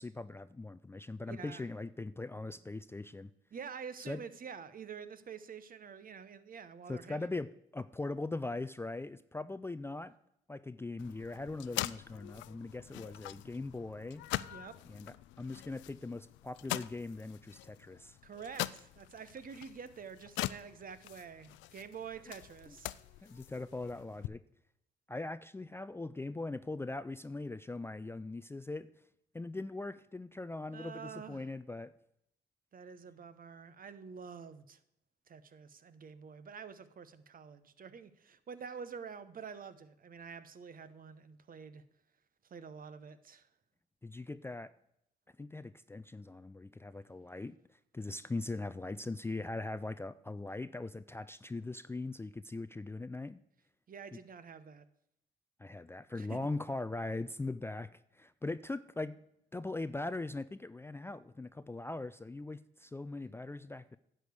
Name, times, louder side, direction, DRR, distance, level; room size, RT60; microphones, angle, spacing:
voice 1, 0.0-3.3 4.1-4.2 6.9-10.1 10.5-14.2 14.9-18.2 23.2-24.4 25.1-28.9 29.3-31.9 44.0-44.7 45.4-47.6 47.9-53.4 54.1-54.2 55.6-59.2 59.5-64.0, left 2 dB, 10° left, 14 dB, 0.4 m, -40 dB
voice 2, 1.3-1.7 3.5-7.3 14.5-14.8 18.2-23.4 30.7-31.5 32.7-34.8 35.3-41.8 42.4-43.5 53.9-54.9 56.1-56.4, right 6 dB, 45° right, 13 dB, 0.9 m, -48 dB
sound 1, 11.0-24.3, left 16 dB, 75° left, 0.4 m, -43 dB
10.0 x 5.0 x 8.0 m, 0.75 s
supercardioid pair, 55°, 20 cm